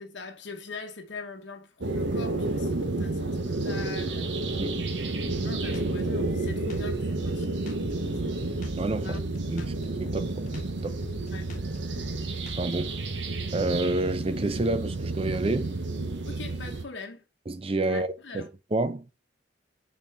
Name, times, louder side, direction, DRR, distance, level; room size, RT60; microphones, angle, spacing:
voice 1, 0.0-4.3 5.2-7.8 8.2-8.6 9.0-9.8 11.3-11.5 16.3-17.2 17.8-18.5, left 4 dB, 70° left, 0.9 m, -42 dB
sound 1, 1.8-16.8, right 2 dB, 70° right, 0.9 m, -30 dB
Drum kit, 5.3-12.9, left 1 dB, 40° left, 1.2 m, -43 dB
voice 2, 8.8-9.2 9.5-9.7 10.0-10.5 10.8-11.0 12.6-12.9 13.5-15.8 17.5-19.1, right 2 dB, 30° right, 0.5 m, -29 dB
5.7 x 4.4 x 4.2 m
head